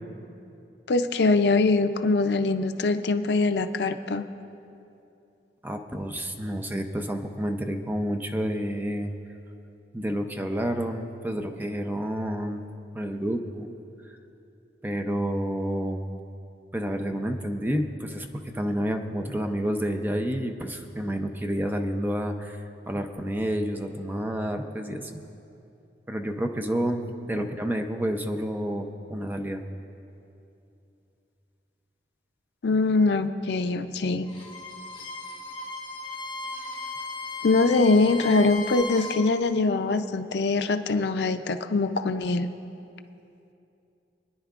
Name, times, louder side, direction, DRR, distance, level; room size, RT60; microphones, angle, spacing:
voice 1, 0.9-4.2 32.6-34.3 37.4-42.5, left 3 dB, 75° left, 9 dB, 0.5 m, -23 dB
voice 2, 5.6-9.1 9.9-12.6 12.9-13.7 14.8-16.0 16.7-25.2 26.1-29.6, equal, 10° right, 4 dB, 0.6 m, -29 dB
Bowed string instrument, 34.2-39.2, left 3 dB, 30° left, 1.2 m, -36 dB
27.0 x 10.0 x 2.4 m, 2.7 s
head